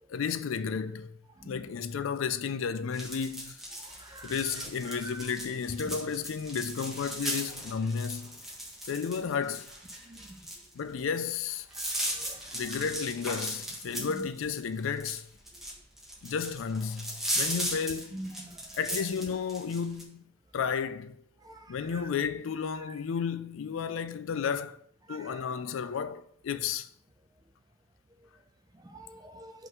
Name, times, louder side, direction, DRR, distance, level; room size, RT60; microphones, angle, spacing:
voice 1, 0.1-1.1 1.4-3.6 4.2-8.4 8.8-9.7 10.7-11.7 12.5-15.3 16.2-18.2 18.7-20.2 20.5-21.2 21.7-24.8 25.1-26.9, left 6 dB, 90° left, 0.4 m, -32 dB
sound 1, 2.9-20.0, equal, ahead, 1.4 m, -37 dB
voice 2, 4.0-4.4 5.0-5.2 10.1-10.2 12.1-12.4 14.0-14.1 17.3-17.4 18.1-18.6 21.4-21.7 25.1-25.3 28.8-29.5, right 1 dB, 20° right, 0.5 m, -45 dB
5.4 x 3.8 x 5.9 m
head